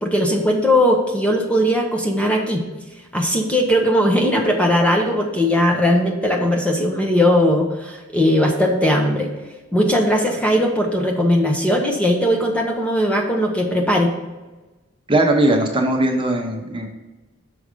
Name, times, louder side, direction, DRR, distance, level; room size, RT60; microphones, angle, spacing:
voice 1, 0.0-2.6 3.1-9.3 9.7-14.1, equal, 5° left, 1 dB, 0.8 m, -18 dB
voice 2, 15.1-16.9, right 1 dB, 25° right, 2 dB, 0.9 m, -19 dB
6.2 x 4.9 x 5.2 m, 1.2 s
head